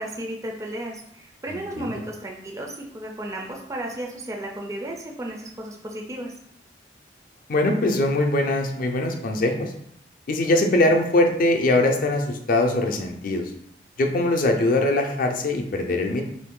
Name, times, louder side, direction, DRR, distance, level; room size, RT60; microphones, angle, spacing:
voice 1, 0.0-6.3, right 1 dB, 20° right, 0 dB, 0.3 m, -34 dB
voice 2, 1.5-1.9 7.5-9.7 10.3-13.5 14.0-16.2, left 2 dB, 50° left, 3 dB, 0.5 m, -22 dB
3.1 x 2.5 x 3.6 m, 0.71 s
head